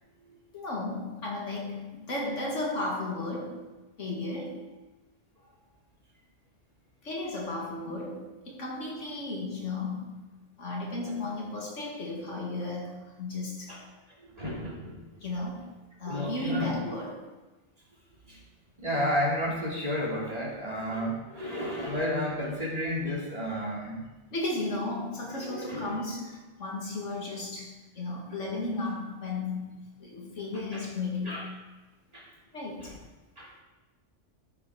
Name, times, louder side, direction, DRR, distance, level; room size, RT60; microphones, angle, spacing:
voice 1, 0.5-4.7 7.0-13.7 15.2-15.7 16.0-17.4 24.3-31.6 32.5-33.0, left 2 dB, 85° left, -2 dB, 2.3 m, -34 dB
voice 2, 14.3-15.0 16.1-16.7 18.3-18.4 18.8-24.0 25.4-25.9 30.7-30.8 31.3-31.4 32.1-32.2 32.8-32.9 33.4-33.5, equal, 30° right, -5 dB, 2.7 m, -31 dB
12.5 x 5.9 x 4.8 m, 1.1 s
omnidirectional pair, 1.2 m